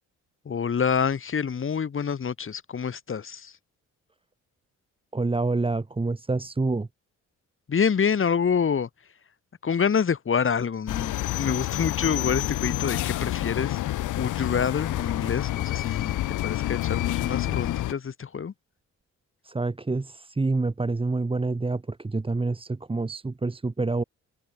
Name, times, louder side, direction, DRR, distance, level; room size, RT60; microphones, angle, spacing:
voice 1, 0.4-3.6 7.7-8.9 9.6-13.8 14.2-18.5, left 6 dB, 45° left, 4.1 m, -27 dB
voice 2, 5.1-6.9 19.4-24.0, right 3 dB, 20° right, 1.9 m, -27 dB
sound 1, 10.9-17.9, left 15 dB, 85° left, 2.1 m, -28 dB
cardioid pair, 90°, 30 cm